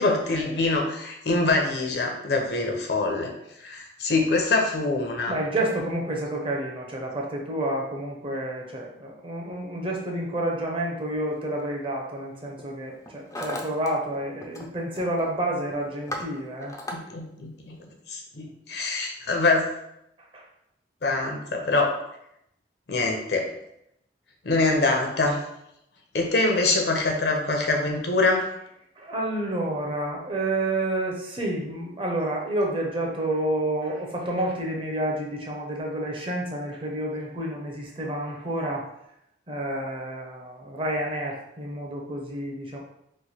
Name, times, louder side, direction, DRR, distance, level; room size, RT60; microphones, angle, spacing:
voice 1, 0.0-3.3 3.6-5.3 16.9-17.8 18.1-19.7 21.0-21.9 22.9-23.5 24.4-25.4 26.1-28.4, left 3 dB, 65° left, 2 dB, 0.6 m, -24 dB
voice 2, 5.3-16.7 18.8-18.9 20.3-20.5 29.0-38.9 39.5-42.8, right 1 dB, 30° right, -1 dB, 0.6 m, -29 dB
Hammer, 11.4-11.6 12.4-12.7 12.9-13.9 14.2-14.7 14.9-15.3 15.7-17.0, left 1 dB, 20° left, 0.3 m, -36 dB
3.1 x 2.2 x 4.1 m, 0.79 s
head